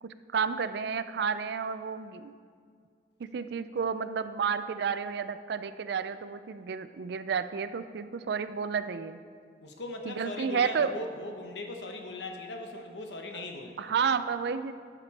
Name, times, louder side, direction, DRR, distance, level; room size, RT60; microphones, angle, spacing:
voice 1, 0.0-2.3 3.2-9.2 10.1-10.9 13.8-14.7, right 6 dB, 65° right, 12 dB, 0.4 m, -31 dB
voice 2, 9.6-13.9, left 2 dB, 70° left, 3 dB, 0.9 m, -39 dB
11.5 x 6.8 x 4.2 m, 2.1 s
head